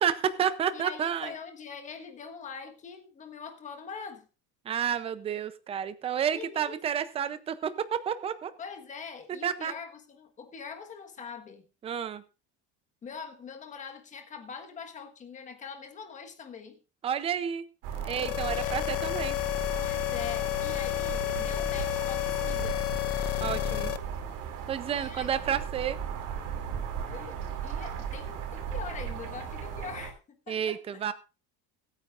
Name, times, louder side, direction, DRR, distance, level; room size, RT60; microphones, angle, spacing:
voice 1, 0.0-1.3 4.7-8.5 9.4-9.7 11.8-12.2 17.0-17.6 18.0-19.4 23.4-23.9 24.7-26.0 30.5-31.1, right 8 dB, 15° right, 0.5 m, -30 dB
voice 2, 0.7-4.3 6.3-6.8 8.6-11.7 13.0-16.8 18.5-18.9 19.8-22.9 24.9-25.6 27.1-31.0, left 5 dB, 20° left, 1.4 m, -43 dB
sound 1, 17.8-30.1, right 7 dB, 65° right, 2.8 m, -37 dB
sound 2, 18.0-24.0, left 18 dB, 45° left, 0.6 m, -31 dB
21.5 x 9.2 x 2.5 m
cardioid pair, 175°, 35 cm